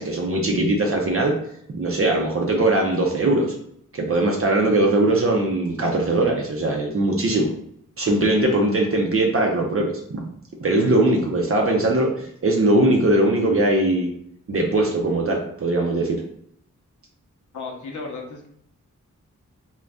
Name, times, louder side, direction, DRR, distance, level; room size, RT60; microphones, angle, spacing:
voice 1, 0.0-1.3 1.7-3.5 3.9-7.5 8.0-10.2 10.6-14.1 14.5-16.2, right 2 dB, 45° right, 0 dB, 0.5 m, -20 dB
voice 2, 17.5-18.5, left 3 dB, 70° left, 1 dB, 0.7 m, -34 dB
2.5 x 2.2 x 3.3 m, 0.70 s
wide cardioid pair, 70°, 31 cm